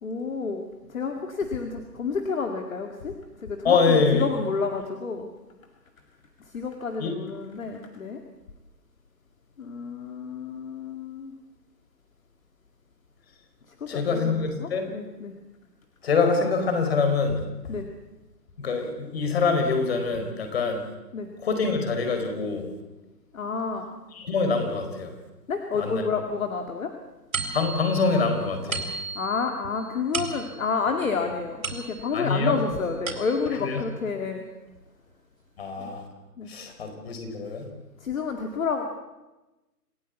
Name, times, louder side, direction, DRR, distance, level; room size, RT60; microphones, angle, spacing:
voice 1, 0.0-3.1 3.4-5.3 6.5-8.2 9.6-11.3 13.8-15.3 17.7-17.9 21.1-21.3 23.3-23.9 25.5-26.9 29.2-34.4 35.8-35.9 36.4-36.5 38.0-38.8, left 5 dB, 55° left, 5 dB, 2.4 m, -30 dB
voice 2, 3.6-4.2 7.0-7.1 13.9-14.9 16.0-17.4 18.6-20.8 21.4-22.6 24.1-25.1 25.8-26.0 27.5-28.8 32.1-32.6 33.6-33.8 35.6-36.0 36.5-37.7, left 4 dB, 35° left, 6 dB, 4.7 m, -24 dB
sound 1, 27.3-32.3 32.8-33.7, right 4 dB, 55° right, 4.4 m, -35 dB
27.5 x 15.5 x 8.3 m, 1.1 s
hypercardioid pair, 165°, 49 cm